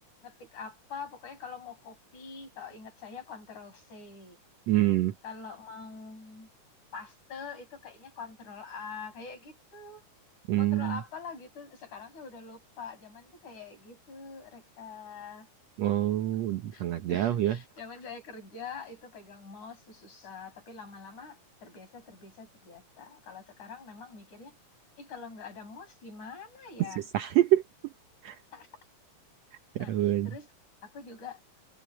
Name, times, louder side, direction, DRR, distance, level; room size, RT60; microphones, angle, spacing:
voice 1, 0.2-4.4 5.2-6.5 6.9-10.0 10.6-15.5 16.7-16.8 17.1-24.6 25.0-27.1 28.5-28.7 29.8-30.5 30.8-31.4, left 5 dB, 65° left, 8.1 m, -44 dB
voice 2, 4.7-5.1 10.5-11.0 15.8-17.6 27.1-27.6 28.2-28.4 29.8-30.3, right 13 dB, 70° right, 1.8 m, -26 dB
omnidirectional pair, 3.7 m